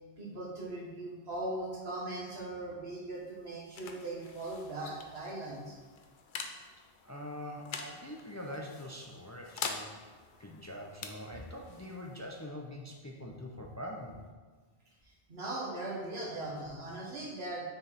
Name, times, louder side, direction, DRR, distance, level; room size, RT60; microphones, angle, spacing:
voice 1, 0.2-5.8 15.0-17.7, right 2 dB, 85° right, -4 dB, 1.8 m, -39 dB
sound 1, 3.0-14.3, left 5 dB, 60° left, 0.8 m, -46 dB
voice 2, 7.0-9.9 10.4-14.2, left 1 dB, 20° left, 0 dB, 0.5 m, -44 dB
6.5 x 4.7 x 4.2 m, 1.4 s
omnidirectional pair, 1.0 m